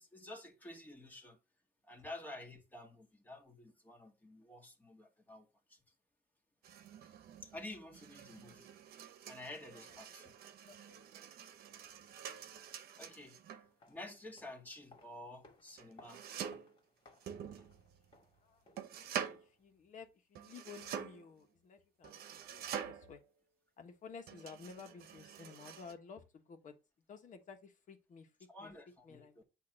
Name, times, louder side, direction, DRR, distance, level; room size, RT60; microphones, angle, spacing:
voice 1, 0.0-1.4 1.8-5.8 7.4-8.7 9.3-10.3 13.0-13.4 13.9-16.3 28.5-29.4, left 1 dB, 10° left, 1.9 m, -51 dB
sound 1, 6.6-13.7 15.8-16.8 17.2-18.2 18.8-19.5 20.3-21.3 22.0-23.2 24.3-25.9, right 8 dB, 65° right, 1.0 m, -47 dB
voice 2, 9.7-10.3 10.7-11.0 11.2-11.3 11.8-12.2 18.4-18.6 19.0-23.2 23.8-26.7 27.1-28.3 28.6-28.7 29.0-29.4, left 5 dB, 50° left, 1.5 m, -54 dB
sound 2, 13.6-19.6 19.9-20.0, left 2 dB, 30° left, 2.4 m, -65 dB
8.6 x 3.0 x 6.4 m
cardioid pair, 110°, 17 cm